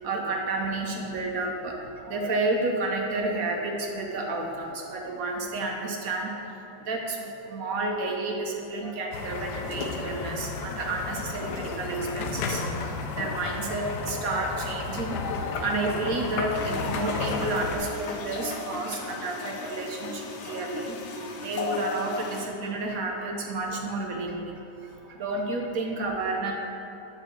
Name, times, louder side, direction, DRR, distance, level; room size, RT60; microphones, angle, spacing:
voice 1, 0.0-26.5, right 2 dB, 60° right, 1 dB, 0.9 m, -31 dB
sound 1, 9.1-17.8, left 4 dB, 70° left, 1.0 m, -32 dB
sound 2, 16.5-22.5, left 4 dB, 90° left, 1.5 m, -37 dB
8.7 x 4.9 x 4.4 m, 2.8 s
omnidirectional pair, 2.2 m